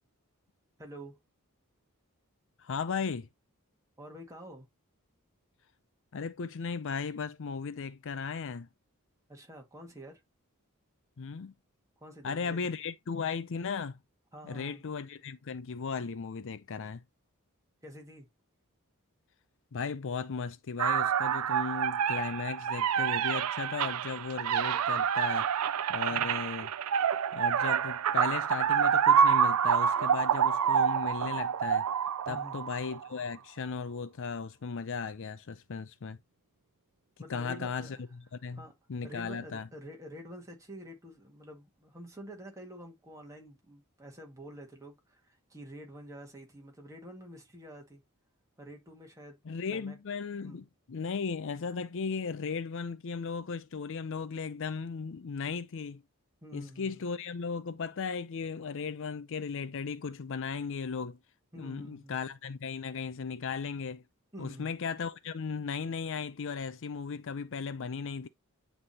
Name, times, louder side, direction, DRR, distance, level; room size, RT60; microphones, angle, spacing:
voice 1, 0.8-1.2 4.0-4.7 9.3-10.2 12.0-12.7 14.3-14.8 17.8-18.3 26.1-26.4 32.3-32.7 37.2-38.0 38.6-38.7 39.0-48.0 48.6-49.4 49.7-50.0 50.4-50.6 56.4-57.0 61.5-62.2 64.3-64.7, equal, 15° right, 1.9 m, -48 dB
voice 2, 2.6-3.3 6.1-8.7 11.2-11.5 12.2-14.0 14.4-17.0 19.7-25.5 25.9-26.7 27.3-31.9 32.3-36.2 37.3-38.0 38.3-38.6 38.9-39.7 49.4-56.0 56.5-61.2 61.6-64.0 64.4-68.3, left 5 dB, 60° left, 0.5 m, -36 dB
sound 1, 20.8-33.1, right 8 dB, 80° right, 0.4 m, -27 dB
9.7 x 3.5 x 2.8 m
head